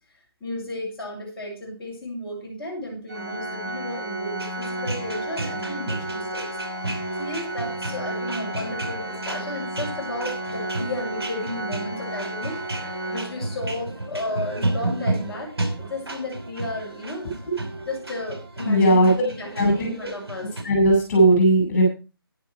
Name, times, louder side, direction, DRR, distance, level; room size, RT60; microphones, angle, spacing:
voice 1, 0.4-6.5 6.8-17.3 17.8-20.5, left 1 dB, 5° left, -11 dB, 6.1 m, -33 dB
Organ, 3.1-13.9, right 1 dB, 45° right, 4.2 m, -33 dB
sound 1, 4.4-20.6, right 2 dB, 80° right, 5.4 m, -33 dB
voice 2, 18.6-19.1 19.6-19.9 20.6-21.8, right 1 dB, 30° left, 1 dB, 6.2 m, -17 dB
11.5 x 11.0 x 4.8 m, 0.33 s
figure-of-eight pair, 165°, 13 cm